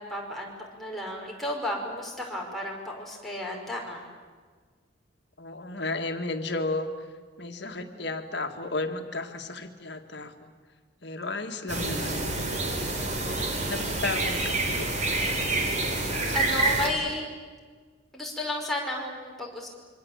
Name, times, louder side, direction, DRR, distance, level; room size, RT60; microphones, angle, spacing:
voice 1, 0.0-4.0 16.3-17.3 18.1-19.7, left 1 dB, ahead, -2 dB, 5.4 m, -33 dB
voice 2, 5.4-7.1 7.4-10.5 11.0-12.5 13.0-14.9, left 2 dB, 65° left, 6 dB, 2.0 m, -34 dB
sound 1, 11.7-16.9, right 2 dB, 40° right, 3.3 m, -27 dB
26.5 x 24.5 x 8.2 m, 1.5 s
head